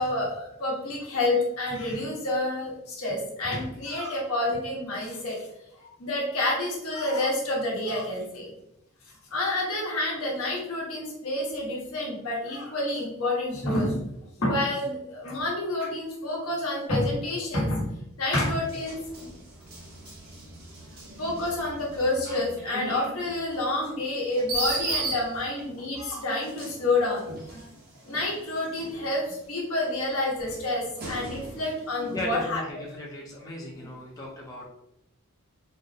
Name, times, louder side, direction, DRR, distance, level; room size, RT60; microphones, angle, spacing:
voice 1, 0.0-5.4 6.0-8.5 9.3-14.0 14.4-17.9 18.2-19.0 21.2-27.6 28.0-32.6, left 2 dB, 80° left, -3 dB, 1.1 m, -28 dB
sound 1, 18.6-25.8 26.4-29.5 29.9-32.0, right 2 dB, 45° right, 0.8 m, -37 dB
voice 2, 32.1-34.7, left 1 dB, 15° left, -4 dB, 0.5 m, -36 dB
3.9 x 2.0 x 2.7 m, 0.81 s
head